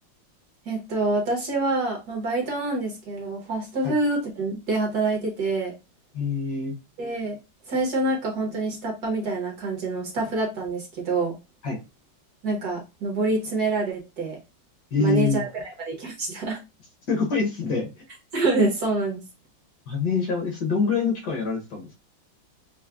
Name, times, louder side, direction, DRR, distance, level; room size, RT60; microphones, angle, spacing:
voice 1, 0.7-5.7 7.0-7.4 7.7-11.4 12.4-14.4 15.0-16.6 18.3-19.2, right 2 dB, 55° right, 0 dB, 1.4 m, -26 dB
voice 2, 6.1-6.7 11.6-11.8 14.9-15.4 17.1-18.0 19.9-22.0, left 4 dB, 60° left, 0 dB, 1.4 m, -25 dB
5.6 x 2.1 x 2.4 m, 0.26 s
omnidirectional pair, 2.2 m